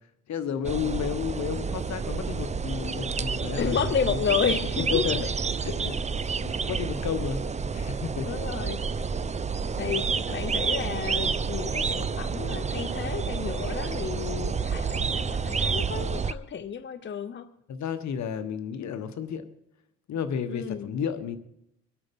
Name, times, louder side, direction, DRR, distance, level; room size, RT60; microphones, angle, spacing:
voice 1, 0.3-3.8 4.0-4.4 4.8-5.2 5.6-6.0 6.4-8.3 9.5-9.6 17.7-19.4 20.1-21.4, left 8 dB, 65° left, 11 dB, 1.3 m, -32 dB
sound 1, 0.6-16.3, right 5 dB, 25° right, 0.6 m, -29 dB
voice 2, 3.6-5.2 8.2-8.8 9.8-17.5 20.5-20.9, left 7 dB, 40° left, 11 dB, 0.8 m, -31 dB
22.5 x 8.9 x 5.4 m, 0.79 s
cardioid pair, 90°, 30 cm